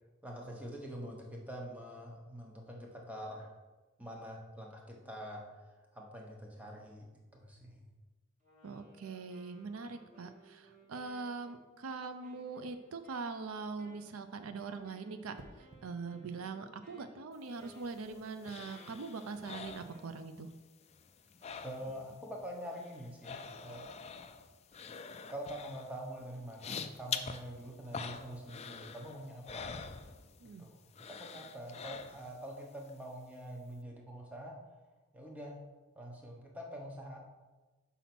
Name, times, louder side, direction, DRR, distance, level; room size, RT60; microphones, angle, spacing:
voice 1, 0.2-3.5 4.0-5.4 5.9-7.8 10.1-10.3 21.6-23.9 25.3-29.7 30.6-30.8 31.1-34.6 35.1-35.6 35.9-37.2, equal, 5° right, -1 dB, 1.0 m, -45 dB
Wind instrument woodwind instrument, 8.4-20.2, equal, 35° right, 2.0 m, -61 dB
voice 2, 8.6-20.5 30.4-30.6, right 4 dB, 85° right, 9 dB, 0.5 m, -42 dB
sound 1, 15.3-15.9 17.9-18.1, right 2 dB, 55° right, 0.7 m, -55 dB
sound 2, 17.5-20.5 20.8-22.2 22.4-30.6 30.9-32.5 32.9-33.0, left 6 dB, 30° left, 0.3 m, -45 dB
5.7 x 4.1 x 6.0 m, 1.2 s
head